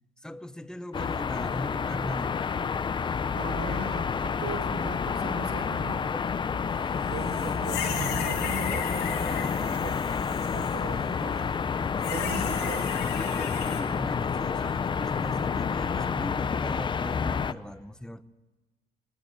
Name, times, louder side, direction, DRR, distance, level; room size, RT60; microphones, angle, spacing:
voice 1, 0.2-2.5 11.2-11.3 12.5-12.8 13.2-18.2, left 1 dB, 5° left, 1.0 m, -39 dB
sound 1, 0.9-17.5, left 6 dB, 30° left, 0.7 m, -29 dB
voice 2, 3.3-6.1 7.1-10.0 10.3-11.6 12.1-13.1, right 4 dB, 80° right, 4.4 m, -39 dB
sound 2, 7.1-10.8 12.0-13.8, left 8 dB, 80° left, 7.1 m, -36 dB
22.0 x 17.5 x 8.1 m
cardioid pair, 110°, 17 cm